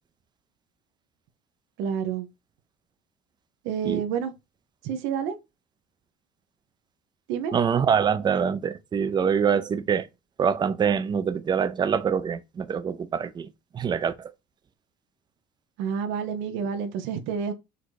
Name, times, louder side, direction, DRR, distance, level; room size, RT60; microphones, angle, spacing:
voice 1, 1.8-2.3 3.6-4.3 4.8-5.4 7.3-7.5 15.8-17.5, right 7 dB, 75° right, 0.8 m, -29 dB
voice 2, 7.5-10.1 10.4-13.5 13.7-14.3, right 7 dB, 20° right, 0.5 m, -25 dB
4.2 x 2.7 x 4.7 m
cardioid pair, 145°, 20 cm